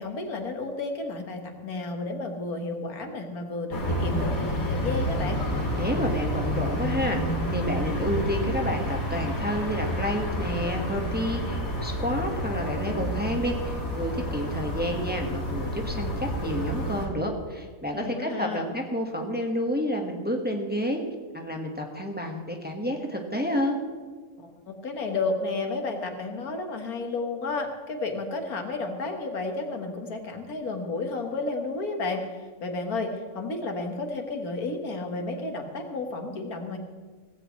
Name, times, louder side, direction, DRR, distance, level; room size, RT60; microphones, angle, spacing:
voice 1, 0.0-5.4 17.9-18.7 24.4-36.8, left 3 dB, 85° left, 4 dB, 2.0 m, -32 dB
sound 1, 3.7-17.1, equal, 50° left, 3.0 m, -29 dB
voice 2, 5.7-7.2 7.5-21.0 21.3-23.8, equal, 5° right, 2 dB, 1.5 m, -30 dB
17.0 x 16.0 x 3.2 m, 1.5 s
omnidirectional pair, 1.5 m